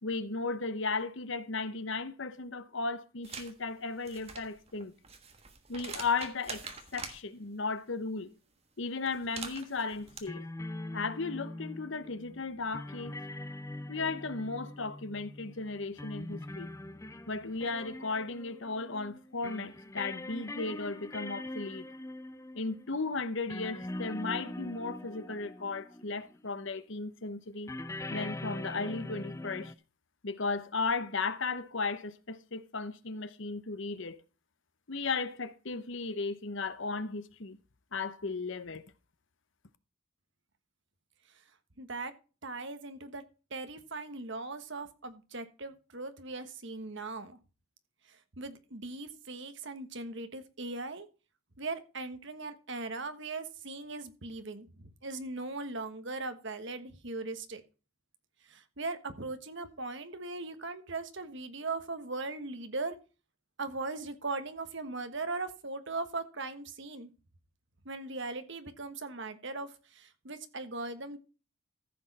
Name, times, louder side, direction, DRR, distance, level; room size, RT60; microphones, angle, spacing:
voice 1, 0.0-4.9 5.7-8.3 8.8-10.5 10.9-13.1 13.9-16.7 17.3-21.9 22.5-27.7 28.1-29.7 30.2-34.2 34.9-37.6 37.9-38.8, left 4 dB, 60° left, 0.9 m, -35 dB
sound 1, 3.2-3.5 3.9-7.2 9.1-10.2, right 5 dB, 30° right, 1.4 m, -44 dB
sound 2, 10.0-26.4 27.7-29.7, left 1 dB, 15° left, 0.4 m, -43 dB
voice 2, 41.8-42.1 42.4-43.2 43.5-47.4 48.1-51.1 51.6-57.6 58.5-63.0 63.6-67.1 67.8-71.2, right 3 dB, 55° right, 1.3 m, -39 dB
14.5 x 6.3 x 4.1 m
head